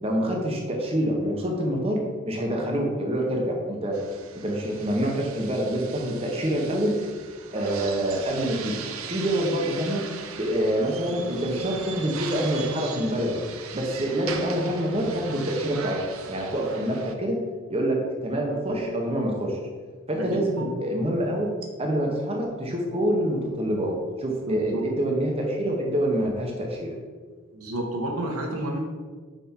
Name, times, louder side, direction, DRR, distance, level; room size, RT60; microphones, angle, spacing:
voice 1, 0.0-2.0 2.3-3.9 4.4-7.0 7.5-8.8 9.1-10.1 10.4-13.4 13.7-16.0 16.3-17.4 17.7-19.6 20.1-21.5 21.8-26.9, right 1 dB, 25° right, 0 dB, 0.8 m, -26 dB
sound 1, 3.9-17.1, right 6 dB, 70° right, 0.6 m, -39 dB
voice 2, 24.5-24.8 27.5-28.8, right 1 dB, 85° right, 1 dB, 1.2 m, -30 dB
5.8 x 4.9 x 4.3 m, 1.5 s
head